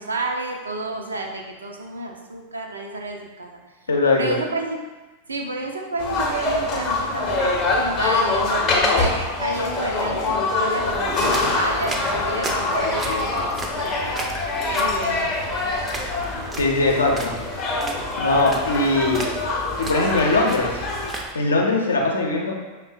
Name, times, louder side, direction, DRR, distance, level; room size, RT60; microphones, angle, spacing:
voice 1, 0.0-3.5 4.1-4.8 5.3-14.1 14.7-15.2, right 2 dB, 75° right, 1 dB, 0.4 m, -30 dB
voice 2, 3.9-4.4 16.6-17.3 18.2-19.2 19.8-20.8 21.3-22.6, left 2 dB, 70° left, 0 dB, 0.5 m, -20 dB
sound 1, 6.0-21.1, left 2 dB, 30° left, 0.6 m, -24 dB
sound 2, 10.8-21.3, right 2 dB, 15° right, 0.4 m, -35 dB
5.3 x 2.1 x 2.5 m, 1.2 s
figure-of-eight pair, 90°, 0 cm